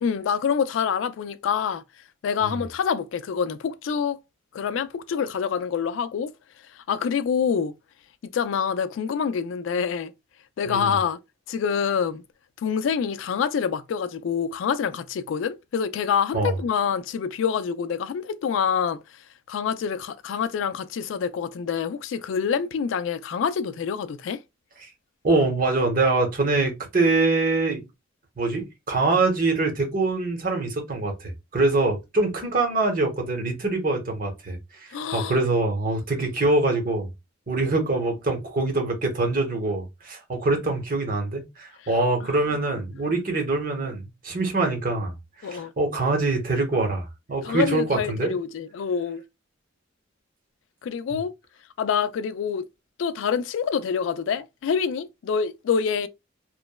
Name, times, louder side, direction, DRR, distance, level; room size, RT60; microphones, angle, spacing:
voice 1, 0.0-1.8 2.2-4.2 4.5-6.3 6.9-7.7 8.3-10.1 10.6-11.2 11.5-12.2 12.6-19.0 19.5-24.4 34.9-35.4 42.2-42.3 45.4-45.7 47.4-49.2 50.8-51.3 51.8-52.7 53.0-56.1, left 7 dB, 75° left, 0.3 m, -26 dB
voice 2, 10.7-11.0 16.3-16.5 24.8-24.9 25.2-27.8 28.4-37.1 37.5-45.1 45.4-48.3, right 3 dB, 45° right, 0.9 m, -24 dB
3.0 x 2.0 x 2.2 m
head